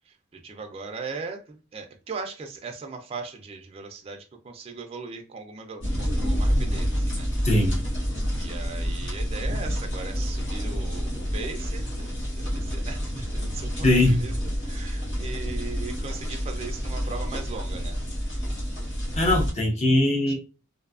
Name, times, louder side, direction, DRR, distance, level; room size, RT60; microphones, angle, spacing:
voice 1, 0.1-7.3 8.4-14.3 14.6-18.0 20.3-20.4, right 4 dB, 30° right, 0.3 m, -39 dB
sound 1, 5.8-19.5, equal, 60° left, 1.0 m, -28 dB
voice 2, 7.4-7.9 13.8-14.2 19.2-20.3, left 1 dB, 35° left, 0.7 m, -21 dB
2.5 x 2.2 x 2.4 m
head